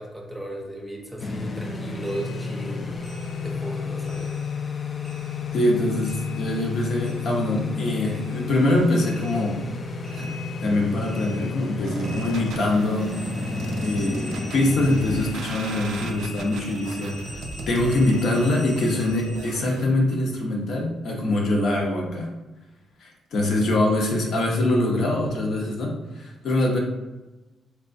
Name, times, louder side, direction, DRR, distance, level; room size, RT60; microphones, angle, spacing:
voice 1, 0.0-3.0 3.4-4.4, equal, 5° right, 0 dB, 0.6 m, -35 dB
sound 1, 1.2-15.4, left 4 dB, 40° left, 0.4 m, -31 dB
sound 2, 2.0-4.7 5.0-7.8 8.0-19.8, left 2 dB, 15° left, 0.9 m, -43 dB
voice 2, 5.5-9.6 10.1-10.3 10.6-13.1 13.8-22.3 23.0-26.8, left 1 dB, 70° left, -1 dB, 0.8 m, -24 dB
sound 3, 11.8-19.8, right 3 dB, 80° right, 0.4 m, -36 dB
3.3 x 3.0 x 2.6 m, 1.1 s
cardioid pair, 95°, 0 cm